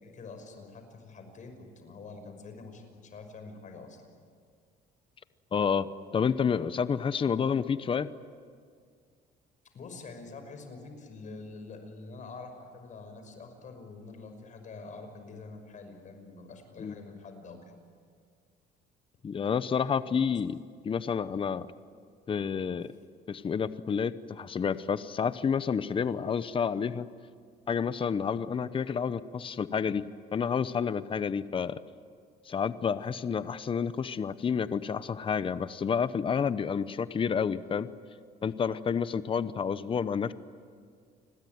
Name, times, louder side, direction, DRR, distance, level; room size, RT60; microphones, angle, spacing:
voice 1, 0.0-4.0 9.7-17.8 22.9-23.0, left 3 dB, 50° left, 6 dB, 6.0 m, -46 dB
voice 2, 5.5-8.1 16.8-16.9 19.2-20.6 20.8-21.7 22.3-22.9 23.3-27.1 27.7-31.8 32.5-37.9 38.4-40.3, left 6 dB, 30° left, 14 dB, 0.9 m, -29 dB
29.5 x 21.0 x 9.5 m, 2.1 s
cardioid pair, 110°, 17 cm